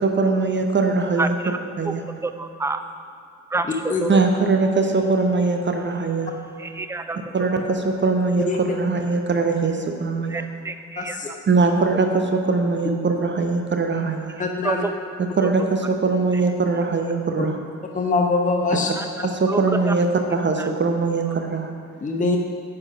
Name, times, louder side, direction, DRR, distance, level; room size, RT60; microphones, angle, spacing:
voice 1, 0.0-1.4 1.8-2.0 4.1-6.3 7.3-10.5 11.5-14.4 15.4-17.6 19.2-21.7, right 3 dB, 25° right, 4 dB, 0.8 m, -21 dB
voice 2, 1.2-1.6 1.8-1.9 2.2-2.8 3.5-4.2 6.6-7.2 7.5-7.6 10.3-11.4 14.6-14.9 15.4-15.7 19.0-19.1 19.5-19.6 19.9-20.0 20.6-20.7, right 3 dB, 5° right, 8 dB, 0.4 m, -28 dB
voice 3, 8.5-8.8 11.0-11.3 14.4-14.8 17.4-17.5 17.9-18.9 22.0-22.4, left 3 dB, 20° left, 2 dB, 0.9 m, -23 dB
9.7 x 4.8 x 6.2 m, 2.2 s
figure-of-eight pair, 45°, 42 cm